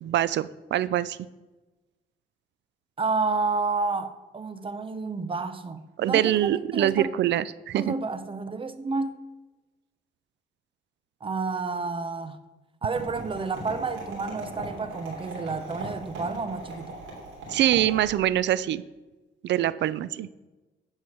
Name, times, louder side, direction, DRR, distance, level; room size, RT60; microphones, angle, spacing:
voice 1, 0.0-1.2 6.0-7.9 17.5-18.8 19.4-20.3, right 12 dB, 65° right, 0.4 m, -24 dB
voice 2, 3.0-7.1 7.7-9.1 11.2-12.4 12.8-17.0, right 4 dB, 25° right, 0.7 m, -30 dB
sound 1, 12.9-18.4, right 2 dB, 90° right, 3.1 m, -39 dB
9.4 x 4.7 x 5.9 m
cardioid pair, 90°, 20 cm